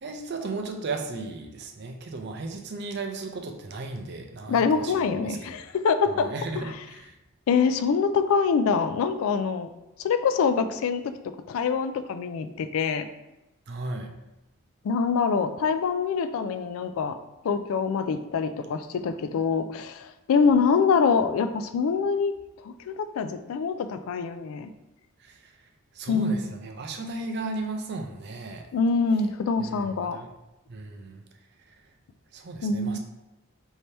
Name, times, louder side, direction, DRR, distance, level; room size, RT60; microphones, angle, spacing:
voice 1, 0.0-5.6 6.1-7.2 13.7-14.1 25.2-25.5 25.9-28.7 29.6-30.3 30.7-31.2 31.7-31.8 32.3-33.0, right 3 dB, 50° right, 4 dB, 0.4 m, -35 dB
voice 2, 4.5-6.6 7.5-9.7 10.0-13.1 14.8-17.2 17.4-22.3 22.6-24.7 26.1-26.5 28.7-30.2 32.6-33.0, left 5 dB, 75° left, 10 dB, 0.3 m, -25 dB
3.3 x 2.8 x 4.3 m, 0.98 s
head